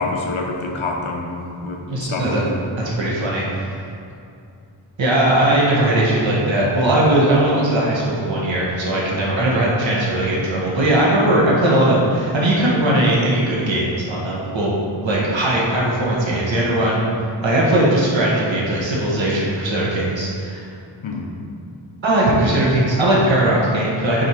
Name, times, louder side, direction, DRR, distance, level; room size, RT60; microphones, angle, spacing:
voice 1, 0.0-2.6 21.0-21.4, left 3 dB, 75° left, 1 dB, 0.9 m, -27 dB
voice 2, 1.9-2.4 2.8-3.8 5.0-14.7 15.0-17.1 17.4-20.7 22.0-24.3, right 1 dB, 70° right, -5 dB, 1.4 m, -19 dB
6.4 x 3.2 x 4.9 m, 2.5 s
cardioid pair, 45°, 48 cm